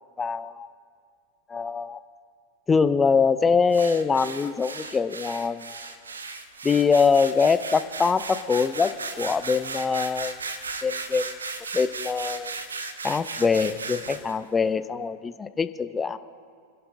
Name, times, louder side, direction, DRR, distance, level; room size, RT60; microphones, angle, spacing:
voice 1, 0.2-0.7 1.5-2.0 2.7-5.7 6.6-8.9 9.2-10.4 10.8-11.3 11.7-12.5 13.0-16.2, left 5 dB, 15° left, 13 dB, 0.4 m, -23 dB
sound 1, 3.7-14.3, right 4 dB, 75° right, 0.8 m, -36 dB
27.5 x 11.0 x 2.5 m, 2.2 s
figure-of-eight pair, 90°, 0 cm